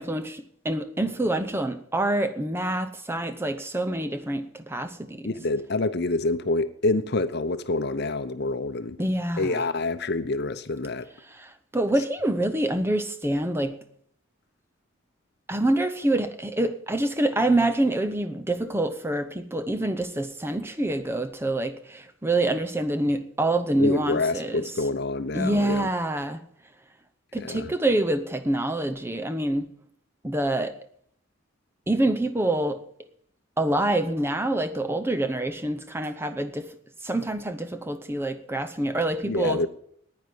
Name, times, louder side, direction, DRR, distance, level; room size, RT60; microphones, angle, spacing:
voice 1, 0.0-5.3 9.0-9.6 11.3-13.8 15.5-24.6 25.3-26.4 27.3-29.7 30.2-30.8 31.9-32.8 33.6-36.7 37.0-39.6, right 1 dB, 10° right, 0.7 m, -26 dB
voice 2, 5.2-9.0 9.4-11.1 23.8-25.9 27.4-27.7 39.2-39.7, left 2 dB, 50° left, 0.8 m, -27 dB
9.9 x 9.6 x 9.3 m
head